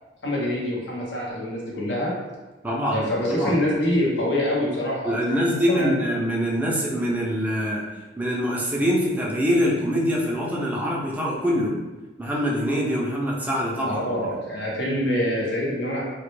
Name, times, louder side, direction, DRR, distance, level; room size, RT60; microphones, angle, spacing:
voice 1, 0.2-2.1 2.9-5.9 13.8-16.0, left 1 dB, 80° left, -4 dB, 0.7 m, -25 dB
voice 2, 2.6-3.6 5.0-7.9 8.2-11.8 12.2-14.3, equal, 10° right, -4 dB, 0.3 m, -24 dB
2.1 x 2.1 x 3.0 m, 1.2 s
head